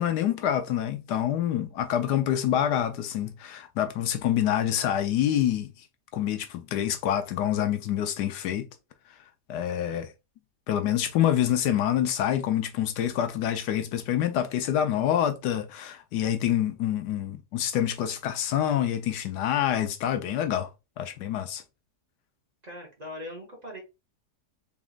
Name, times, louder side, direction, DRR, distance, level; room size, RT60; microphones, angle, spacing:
voice 1, 0.0-5.7 6.1-8.7 9.5-10.1 10.7-20.7 21.0-21.6, left 10 dB, 80° left, 1.2 m, -26 dB
voice 2, 22.6-23.8, left 1 dB, 30° right, 1.0 m, -40 dB
4.1 x 3.6 x 2.4 m
omnidirectional pair, 1.8 m